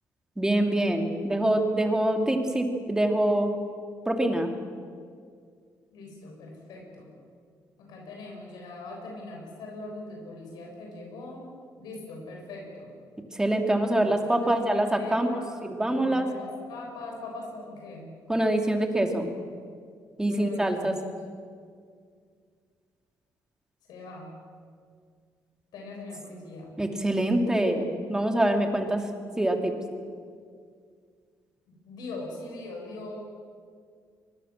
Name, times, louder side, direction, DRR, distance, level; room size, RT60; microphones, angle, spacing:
voice 1, 0.4-3.5 4.0-4.5 13.3-16.3 18.3-19.3 20.2-20.9 26.8-29.0 29.4-29.7, right 1 dB, 10° right, 4 dB, 2.8 m, -25 dB
voice 2, 5.9-7.1 7.8-11.5 11.8-12.9 13.9-15.6 15.9-18.1 20.3-21.2 23.9-24.4 25.7-26.8 31.7-33.2, left 2 dB, 90° left, -1 dB, 7.0 m, -41 dB
24.0 x 22.5 x 7.4 m, 2.1 s
cardioid pair, 115°, 7 cm